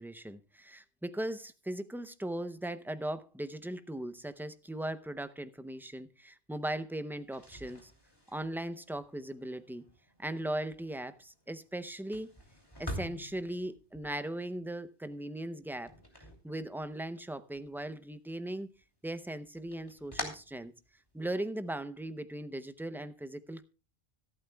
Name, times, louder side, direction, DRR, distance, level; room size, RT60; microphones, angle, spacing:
voice 1, 0.0-7.9 8.3-9.9 10.2-12.3 12.8-15.9 16.4-18.7 19.0-20.7 21.1-23.7, right 1 dB, ahead, 0.5 m, -38 dB
sound 1, 7.2-17.2 17.5-18.4 18.7-21.4, equal, 20° left, 3.0 m, -47 dB
25.5 x 8.7 x 2.3 m
omnidirectional pair, 1.1 m